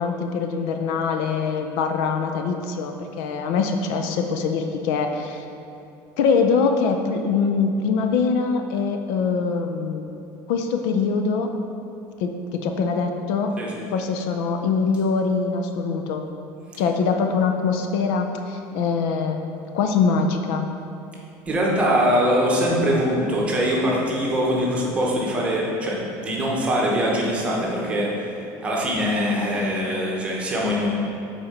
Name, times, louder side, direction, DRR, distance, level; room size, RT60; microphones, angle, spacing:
voice 1, 0.0-5.4 6.2-10.1 10.5-11.5 12.2-13.5 13.9-16.2 16.8-19.4 19.7-20.7, left 5 dB, 65° left, 5 dB, 0.5 m, -23 dB
voice 2, 21.5-30.9, equal, 15° right, -3 dB, 1.0 m, -23 dB
7.1 x 4.3 x 5.1 m, 2.7 s
cardioid pair, 180°, 8 cm